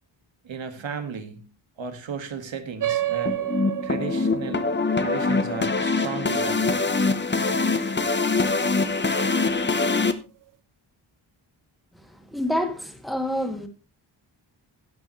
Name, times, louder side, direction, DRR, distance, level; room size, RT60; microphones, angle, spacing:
voice 1, 0.4-1.5 1.8-3.4 3.8-4.7 5.0-6.9, right 6 dB, 70° right, 2.0 m, -34 dB
sound 1, 2.8-7.7, right 13 dB, 45° right, 0.8 m, -32 dB
sound 2, 3.3-10.1, left 3 dB, 25° left, 1.0 m, -24 dB
voice 2, 11.9-13.7, equal, ahead, 2.2 m, -28 dB
16.5 x 9.2 x 3.2 m
wide cardioid pair, 145°, 47 cm